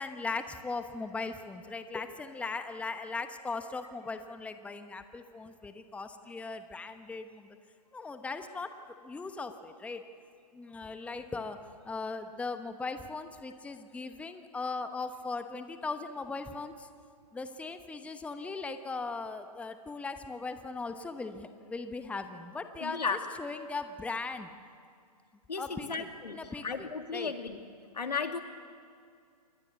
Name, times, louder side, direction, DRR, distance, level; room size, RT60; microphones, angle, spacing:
voice 1, 0.0-7.6 7.9-8.7 9.0-10.0 10.5-16.9 17.3-24.5 25.6-27.3, left 3 dB, 5° left, 8 dB, 1.1 m, -39 dB
voice 2, 22.8-23.2 25.5-27.6 27.9-28.4, left 5 dB, 85° left, 6 dB, 2.5 m, -34 dB
27.5 x 21.5 x 8.3 m, 2.3 s
hypercardioid pair, 130°, 20 cm